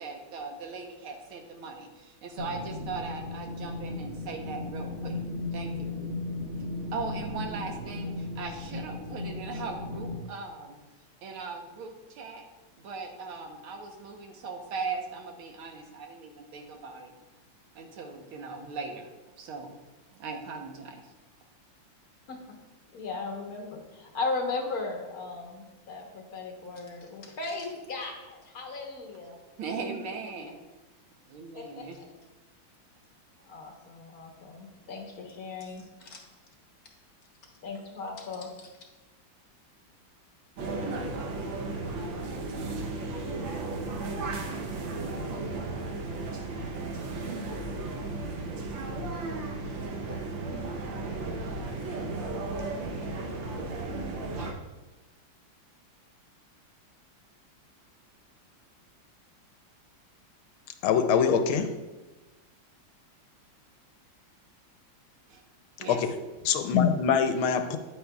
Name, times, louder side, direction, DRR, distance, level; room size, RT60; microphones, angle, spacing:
voice 1, 0.0-5.2 5.5-6.0 6.9-10.8 11.2-12.4 12.8-17.1 17.8-19.1 19.4-19.7 20.2-21.1 29.6-30.5 31.3-32.0 65.3-65.4 65.8-66.0, right 4 dB, 85° right, 3 dB, 1.8 m, -39 dB
sound 1, 2.4-10.2, left 2 dB, 45° right, 1.7 m, -36 dB
voice 2, 22.9-29.4 31.5-32.0 33.4-36.2 37.6-38.7, left 3 dB, 50° left, 1 dB, 1.4 m, -37 dB
sound 2, 40.6-54.5, right 3 dB, 70° right, 1.6 m, -34 dB
voice 3, 60.8-61.7 65.9-66.0 66.5-67.8, left 7 dB, 85° left, 8 dB, 1.4 m, -23 dB
9.4 x 8.8 x 2.3 m, 1.1 s
omnidirectional pair, 2.3 m